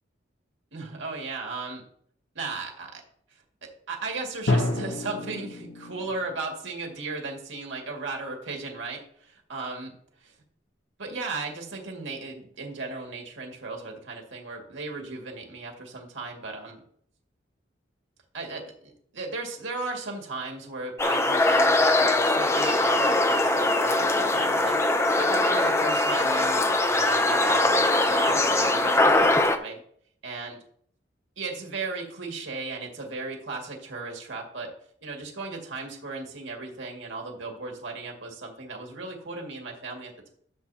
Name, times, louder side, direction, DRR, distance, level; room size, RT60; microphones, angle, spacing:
voice 1, 0.7-1.8 2.3-3.0 3.3-3.4 3.9-9.9 11.0-16.8 18.3-26.7 26.9-29.8 30.2-30.6 31.4-34.7 35.0-40.3, right 3 dB, 90° right, 1 dB, 2.1 m, -36 dB
Drum, 4.5-6.4, left 2 dB, 85° left, 1.2 m, -28 dB
sound 1, 21.0-29.6, left 2 dB, 15° left, 0.5 m, -22 dB
12.5 x 7.1 x 2.8 m, 0.63 s
head